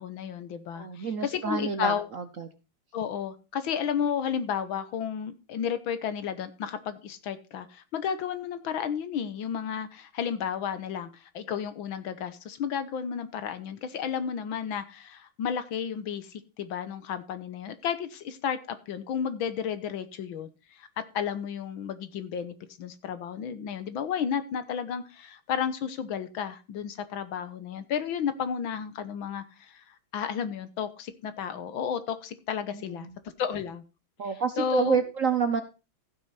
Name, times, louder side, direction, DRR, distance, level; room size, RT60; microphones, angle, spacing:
voice 1, 0.0-2.1 2.9-20.5 20.8-20.9 21.1-33.1 33.4-33.8 34.6-35.0, left 7 dB, 75° left, 1.8 m, -32 dB
voice 2, 0.7-2.5 32.7-33.2 34.2-35.6, right 6 dB, 55° right, 1.0 m, -29 dB
15.0 x 6.3 x 4.2 m
omnidirectional pair, 2.3 m